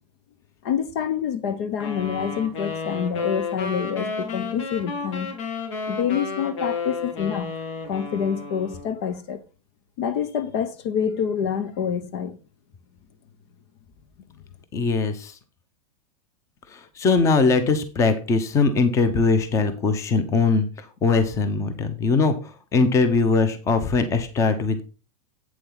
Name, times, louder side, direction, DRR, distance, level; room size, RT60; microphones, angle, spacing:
voice 1, 0.6-5.3 5.9-7.5 7.9-9.4 10.0-12.4, left 8 dB, 50° left, 1.1 m, -27 dB
sound 1, 1.8-9.0, left 4 dB, 65° left, 3.3 m, -31 dB
voice 2, 14.7-15.3 16.7-20.7 21.0-24.8, left 4 dB, 15° left, 1.0 m, -21 dB
8.6 x 7.6 x 3.9 m
supercardioid pair, 165°, 17 cm